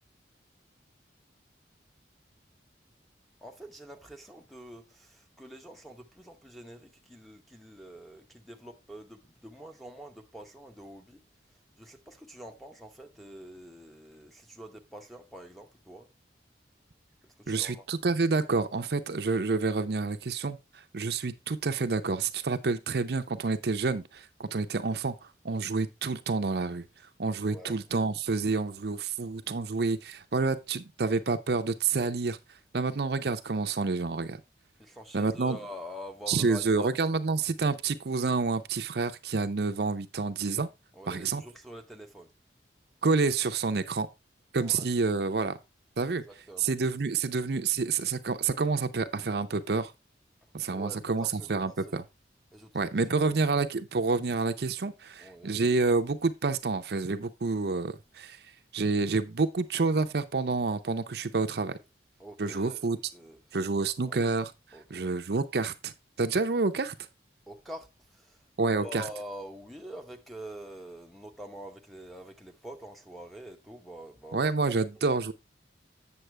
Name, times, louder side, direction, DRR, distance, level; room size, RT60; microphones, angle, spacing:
voice 1, 3.4-11.2 11.8-16.1 17.4-17.9 27.5-27.8 34.8-36.9 40.9-42.3 44.6-44.9 46.0-46.7 50.6-51.5 51.9-52.0 52.5-52.8 55.2-55.6 62.2-62.9 63.1-63.4 64.0-64.2 64.7-65.1 67.5-75.2, equal, ahead, 0.9 m, -46 dB
voice 2, 17.5-25.2 25.4-26.8 27.2-32.4 32.7-34.4 35.1-35.6 36.3-40.7 41.1-41.4 43.0-44.1 44.5-45.6 46.0-46.2 46.6-49.9 50.5-52.0 52.7-58.4 58.7-61.8 62.4-63.0 63.5-64.5 64.9-65.9 66.2-67.0 68.6-69.0 74.3-75.3, right 4 dB, 60° right, 0.6 m, -28 dB
8.0 x 7.0 x 3.3 m
head